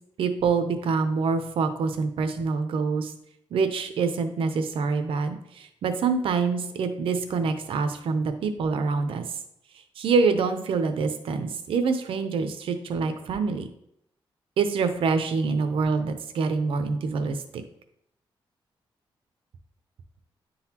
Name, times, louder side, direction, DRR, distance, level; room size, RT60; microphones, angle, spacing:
voice 1, 0.2-3.1 3.5-9.2 10.0-13.7 14.6-17.6, right 4 dB, 80° right, 8 dB, 0.6 m, -26 dB
9.8 x 4.0 x 2.9 m, 0.76 s
cardioid pair, 115°, 9 cm